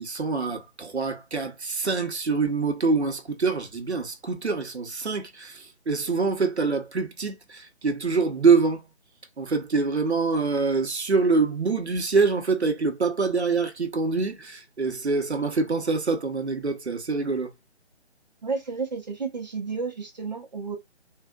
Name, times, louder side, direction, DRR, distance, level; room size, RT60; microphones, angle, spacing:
voice 1, 0.0-8.8 9.4-17.5, right 4 dB, 70° right, 1.1 m, -25 dB
voice 2, 18.4-20.8, right 4 dB, 40° right, 0.9 m, -31 dB
3.7 x 2.5 x 2.3 m
figure-of-eight pair, 150°, 34 cm